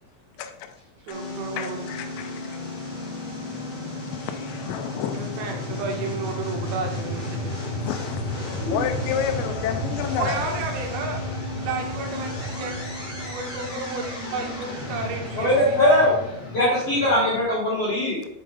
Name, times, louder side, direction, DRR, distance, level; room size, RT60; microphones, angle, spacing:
voice 1, 0.4-0.7 1.1-1.2 1.6-2.6 4.1-5.4 7.8-8.3 8.7-10.4, left 9 dB, 85° left, 3.1 m, -30 dB
sound 1, 1.1-17.4, left 1 dB, 35° left, 1.7 m, -32 dB
voice 2, 1.1-1.9 5.1-7.5 10.2-11.2 11.6-15.8, right 4 dB, 85° right, 3.7 m, -32 dB
voice 3, 15.4-16.1 16.5-18.3, left 1 dB, 55° left, 1.8 m, -21 dB
7.8 x 4.9 x 3.5 m
omnidirectional pair, 6.0 m